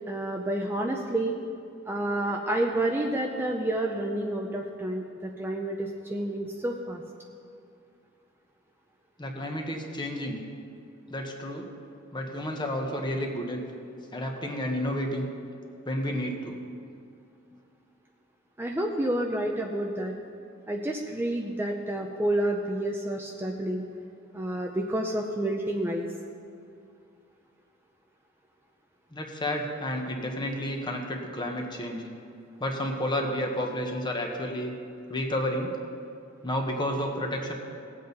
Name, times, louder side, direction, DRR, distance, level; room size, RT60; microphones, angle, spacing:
voice 1, 0.1-1.4 1.9-7.0 18.6-20.1 20.7-23.8 24.3-26.1, right 1 dB, 10° right, 1 dB, 0.6 m, -29 dB
voice 2, 9.2-10.4 11.1-11.7 12.1-13.6 14.1-15.3 15.9-16.6 29.1-32.0 32.6-34.7 35.1-35.8 36.4-37.5, left 1 dB, 20° left, 2 dB, 1.2 m, -31 dB
19.0 x 7.8 x 4.0 m, 2.5 s
head